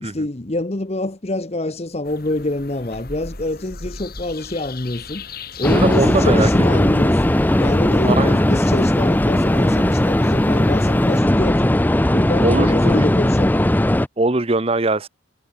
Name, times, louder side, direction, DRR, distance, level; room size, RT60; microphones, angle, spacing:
voice 1, 0.0-5.2 5.6-11.8 12.1-13.5, left 1 dB, 30° left, 0.9 m, -26 dB
sound 1, 2.0-11.2, left 4 dB, 45° left, 3.5 m, -39 dB
sound 2, 5.6-14.1, left 1 dB, 10° left, 0.5 m, -17 dB
voice 2, 5.7-6.8 8.0-8.4 12.4-13.0 14.2-15.1, right 2 dB, 30° right, 0.8 m, -21 dB
head